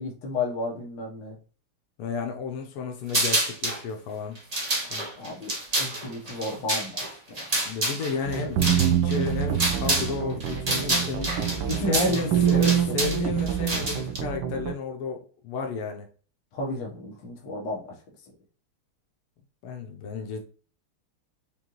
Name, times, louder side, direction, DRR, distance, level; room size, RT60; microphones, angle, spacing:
voice 1, 0.0-1.4 5.2-7.1 11.7-13.0 16.5-17.9, left 1 dB, 60° left, 1.6 m, -32 dB
voice 2, 2.0-4.4 4.9-5.1 7.6-11.3 11.9-16.1 19.6-20.4, left 4 dB, 85° left, 1.6 m, -33 dB
sound 1, 3.1-3.8 4.3-10.1 10.4-14.2, right 1 dB, 45° right, 0.4 m, -28 dB
sound 2, 8.3-14.7, right 9 dB, 85° right, 0.9 m, -26 dB
5.2 x 2.5 x 3.0 m
omnidirectional pair, 2.4 m